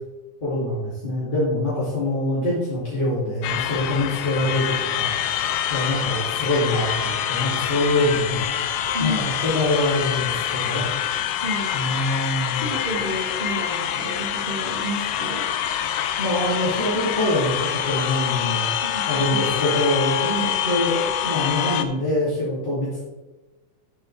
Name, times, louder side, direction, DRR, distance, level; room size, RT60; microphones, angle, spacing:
voice 1, 0.4-8.4 9.0-10.9 11.7-12.6 16.2-18.7 19.1-20.3 20.6-23.0, left 1 dB, 15° left, -10 dB, 2.1 m, -24 dB
sound 1, 3.4-21.8, left 10 dB, 80° left, 2.1 m, -26 dB
voice 2, 11.4-11.9 12.5-15.4 18.8-19.5 20.3-20.5, equal, 30° right, -3 dB, 0.9 m, -31 dB
11.0 x 7.2 x 3.3 m, 1.2 s
omnidirectional pair, 3.8 m